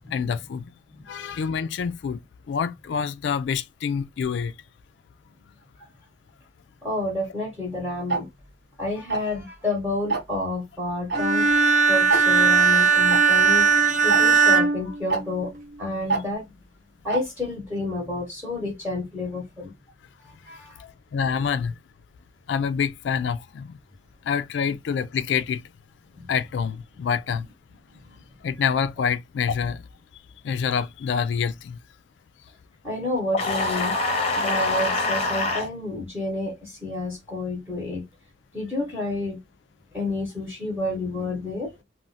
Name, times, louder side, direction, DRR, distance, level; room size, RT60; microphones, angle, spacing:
voice 1, 0.1-0.7 1.1-2.2 2.5-4.5 20.8-21.7 22.5-23.8 24.3-25.6 26.3-27.4 28.4-29.8 30.4-31.8, left 6 dB, 80° left, 0.3 m, -26 dB
voice 2, 6.8-8.3 8.8-11.5 11.9-13.7 14.0-15.5 15.8-16.4 17.0-19.7 20.2-20.8 24.6-24.7 26.1-26.3 27.9-28.2 32.8-33.9 34.3-38.0 38.5-39.4 39.9-41.8, left 2 dB, 10° right, 0.9 m, -30 dB
Tick-tock, 8.1-8.2 9.1-9.4 10.1-10.4 11.1-11.2 11.5-11.6 12.1-12.2 13.1-13.2 14.1-14.2 15.1-15.2 16.1-16.2 17.1-17.2, right 4 dB, 65° right, 0.9 m, -24 dB
Bowed string instrument, 11.1-15.6, right 5 dB, 45° right, 0.5 m, -19 dB
sound 1, 33.4-35.7, left 2 dB, 35° left, 0.6 m, -25 dB
2.4 x 2.1 x 3.9 m
head